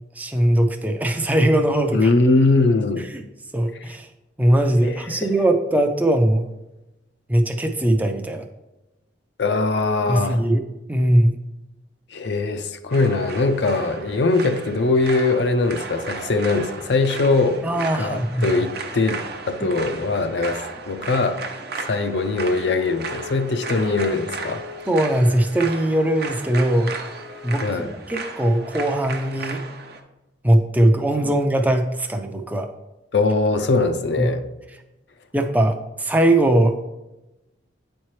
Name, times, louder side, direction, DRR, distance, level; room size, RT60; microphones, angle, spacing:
voice 1, 0.2-2.1 3.1-3.2 3.5-4.1 4.4-6.4 7.3-8.5 10.1-10.6 10.9-11.3 17.6-18.4 24.9-26.9 27.4-27.6 28.1-29.6 30.4-32.7 34.2-34.3 35.3-36.7, right 1 dB, 10° right, 5 dB, 0.4 m, -20 dB
voice 2, 1.9-3.1 4.8-5.3 9.4-10.4 12.1-17.6 17.9-21.4 21.8-24.6 27.6-27.9 31.2-31.4 33.1-34.4, left 3 dB, 65° left, 7 dB, 0.5 m, -21 dB
sound 1, 12.9-30.0, right 4 dB, 60° right, 0.7 m, -35 dB
Wind instrument woodwind instrument, 22.5-27.8, left 6 dB, 85° left, 1.2 m, -41 dB
9.0 x 4.4 x 3.1 m, 0.99 s
head